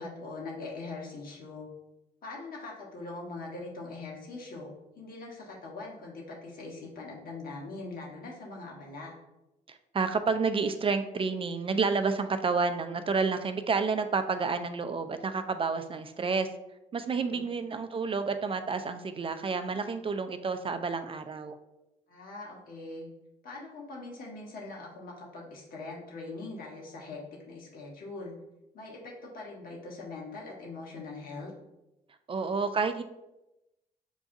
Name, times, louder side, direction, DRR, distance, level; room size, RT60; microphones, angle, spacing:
voice 1, 0.0-1.7 2.2-9.1 17.2-17.5 22.1-23.1 23.4-28.3 28.7-31.5, left 3 dB, 60° left, -2 dB, 1.2 m, -42 dB
voice 2, 9.7-16.5 16.9-21.6 32.3-33.0, right 4 dB, 30° right, 9 dB, 0.4 m, -30 dB
6.2 x 2.3 x 2.6 m, 0.94 s
hypercardioid pair, 45°, 17 cm